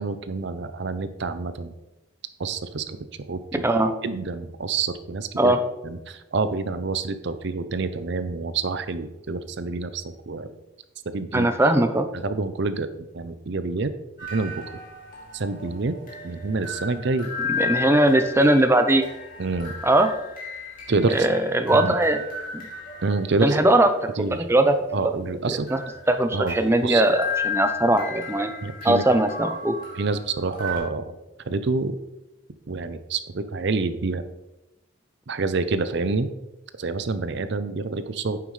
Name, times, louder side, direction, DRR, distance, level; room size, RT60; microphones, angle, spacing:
voice 1, 0.0-1.7 2.4-3.0 3.3-3.4 4.0-5.5 5.8-10.5 11.1-11.5 12.2-12.9 13.1-13.9 14.3-14.6 15.3-15.9 16.2-17.3 19.4-19.7 20.9-21.3 21.7-22.0 23.0-23.6 24.2-24.4 24.9-25.7 26.3-26.6 26.8-27.0 27.9-28.0 28.6-29.0 30.0-31.2 31.5-32.0 32.7-34.2 35.3-36.3 36.8-38.4, right 3 dB, 55° right, 11 dB, 0.6 m, -27 dB
voice 2, 11.3-12.1 17.5-19.0 19.8-20.1 21.1-22.2 22.5-22.7 23.4-23.9 24.2-24.7 25.5-25.8 26.1-28.5 28.8-29.7, right 1 dB, 10° right, 7 dB, 0.5 m, -20 dB
sound 1, 14.2-30.8, left 4 dB, 40° left, 2.5 m, -35 dB
9.3 x 7.4 x 3.2 m, 0.98 s
head